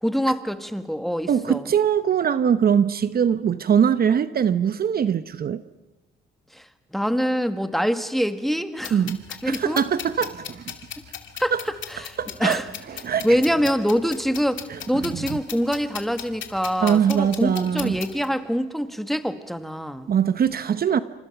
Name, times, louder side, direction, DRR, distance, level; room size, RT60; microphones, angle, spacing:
voice 1, 0.0-1.7 6.5-6.6 6.9-9.0 9.4-9.8 11.4-11.5 11.9-12.7 13.2-20.1, equal, ahead, 9 dB, 1.6 m, -25 dB
voice 2, 1.3-5.6 8.9-10.7 11.5-11.6 12.2-12.6 13.0-13.3 14.7-15.4 16.8-18.0 20.1-21.0, right 8 dB, 50° right, 13 dB, 0.9 m, -22 dB
sound 1, 8.8-18.3, left 10 dB, 75° left, 2.4 m, -38 dB
28.0 x 26.0 x 6.0 m, 1.1 s
cardioid pair, 90°, 20 cm